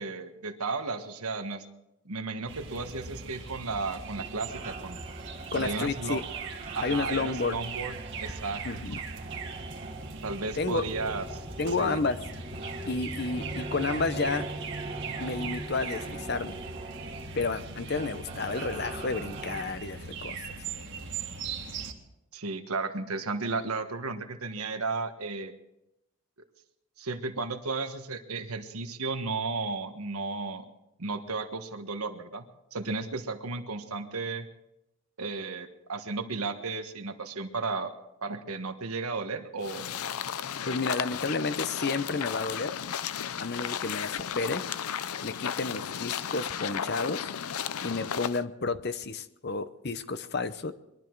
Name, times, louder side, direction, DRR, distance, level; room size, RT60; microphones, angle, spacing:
voice 1, 0.0-1.6 2.0-5.0 5.5-6.2 6.7-8.6 10.2-11.4 11.8-12.0 22.3-25.5 27.0-30.7 31.0-34.5 35.2-37.9 38.2-39.9, right 3 dB, 90° right, 7 dB, 1.4 m, -34 dB
sound 1, 2.5-21.9, right 4 dB, 55° right, 1.8 m, -40 dB
sound 2, 4.2-19.6, right 2 dB, 30° right, 1.3 m, -41 dB
voice 2, 5.5-6.2 6.8-7.6 8.6-9.0 10.6-10.8 11.6-12.2 12.9-14.5 15.2-16.6 17.4-20.4 40.7-42.7 43.4-44.6 45.2-47.3 47.8-50.7, left 3 dB, 50° left, 12 dB, 0.8 m, -31 dB
sound 3, 39.6-48.4, left 8 dB, 85° left, 0.5 m, -34 dB
22.0 x 12.5 x 4.7 m, 0.86 s
head